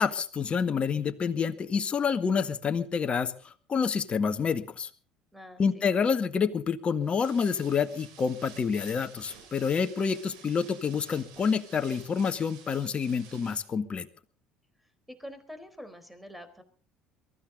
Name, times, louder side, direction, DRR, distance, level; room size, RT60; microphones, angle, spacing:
voice 1, 0.0-4.9 5.6-14.1, left 6 dB, 35° left, 9 dB, 1.8 m, -28 dB
voice 2, 5.3-5.8 14.8-16.6, equal, ahead, 10 dB, 4.3 m, -46 dB
sound 1, 7.0-13.7, right 7 dB, 75° right, 5.1 m, -52 dB
23.0 x 14.0 x 4.0 m, 0.39 s
hypercardioid pair, 65°, 3 cm